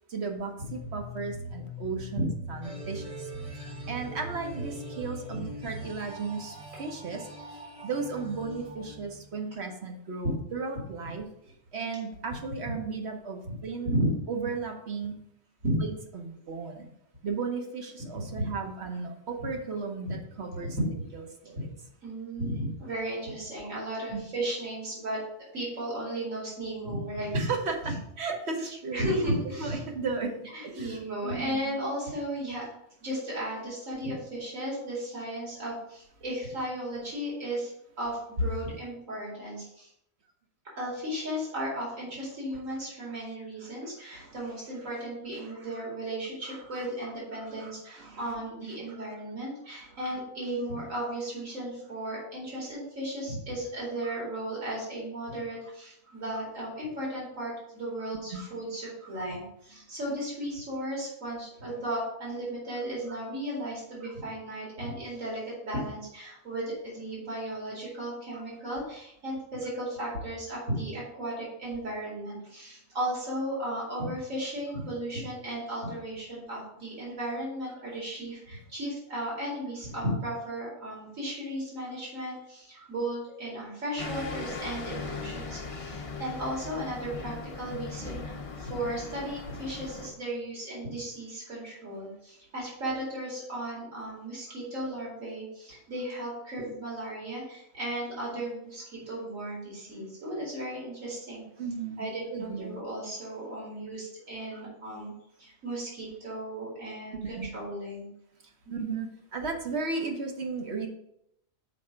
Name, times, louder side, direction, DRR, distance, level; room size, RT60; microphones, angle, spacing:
voice 1, 0.1-3.3 3.5-7.3 7.8-11.3 11.7-14.0 14.3-15.2 15.8-16.9 17.2-20.8 21.4-21.7 24.1-24.2 27.3-29.2 29.4-30.4 30.6-31.7 42.7-42.8 43.1-43.2 43.6-43.7 44.0-44.5 45.4-45.8 46.4-48.4 48.9-49.1 49.7-50.2 52.1-52.2 54.0-54.2 56.1-56.2 58.3-58.5 63.1-63.2 64.0-64.1 68.3-68.4 82.8-82.9 94.5-94.6 96.6-96.7 101.6-102.1 102.3-102.7 104.5-104.7 107.4-107.5 108.7-110.9, right 4 dB, 55° right, 3 dB, 1.2 m, -36 dB
sound 1, 0.7-6.0, equal, 65° left, 1.0 m, -41 dB
sound 2, 2.6-9.6, right 2 dB, 30° right, 0.7 m, -44 dB
voice 2, 18.2-18.5 20.8-20.9 22.0-25.2 25.5-27.5 27.8-27.9 28.6-29.8 30.5-32.7 33.0-39.9 40.8-101.4 102.0-105.1 105.4-108.1 108.6-108.8, right 1 dB, 70° right, -5 dB, 2.9 m, -35 dB
sound 3, 84.0-90.1, left 3 dB, 35° left, 0.6 m, -39 dB
6.5 x 4.8 x 4.5 m, 0.76 s
omnidirectional pair, 1.4 m